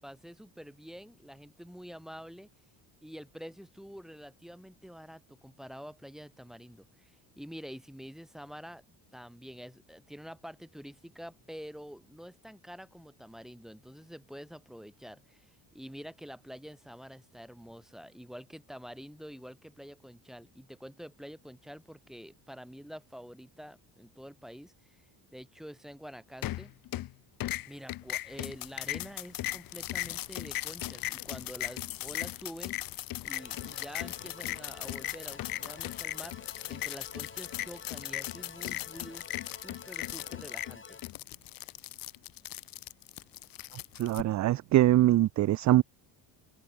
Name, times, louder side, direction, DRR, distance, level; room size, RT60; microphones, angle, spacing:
voice 1, 0.0-2.5 3.0-8.8 9.1-26.7 27.6-32.8 33.2-39.3 39.6-41.0, equal, ahead, 4.9 m, -47 dB
sound 1, 26.4-27.1 27.4-44.2, left 15 dB, 50° left, 0.6 m, -38 dB
sound 2, 33.3-41.1, left 4 dB, 25° left, 4.7 m, -50 dB
voice 2, 44.0-45.8, right 14 dB, 40° right, 0.4 m, -23 dB
cardioid pair, 100°, 47 cm